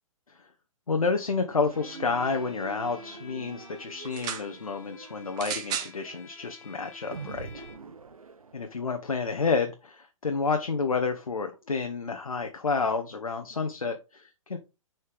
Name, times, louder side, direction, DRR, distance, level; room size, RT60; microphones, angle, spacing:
voice 1, 0.9-7.6 8.5-14.6, left 4 dB, 80° left, 5 dB, 0.8 m, -30 dB
sound 1, 1.6-9.1, right 4 dB, 80° right, 0.7 m, -45 dB
Bowed string instrument, 1.7-8.0, left 7 dB, 20° left, 1.0 m, -52 dB
sound 2, 4.0-4.5 5.4-6.0 6.8-6.9, right 8 dB, 20° right, 0.9 m, -33 dB
6.6 x 4.3 x 3.4 m, 0.28 s
figure-of-eight pair, 120°, 18 cm